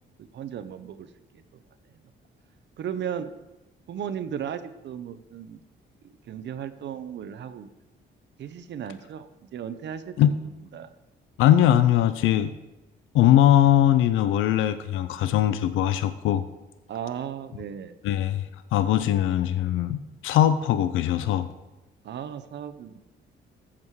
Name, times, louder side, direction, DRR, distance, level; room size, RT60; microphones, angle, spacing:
voice 1, 0.2-1.1 1.3-1.4 2.8-3.3 3.9-5.6 6.0-7.7 8.4-10.2 10.7-10.9 16.9-17.9 22.0-23.0, right 8 dB, 65° right, 11 dB, 0.8 m, -35 dB
voice 2, 11.4-12.5 13.1-16.4 18.0-18.4 18.7-21.5, left 11 dB, 85° left, 12 dB, 0.6 m, -21 dB
13.5 x 7.5 x 4.8 m, 1.0 s
cardioid pair, 90°, 20 cm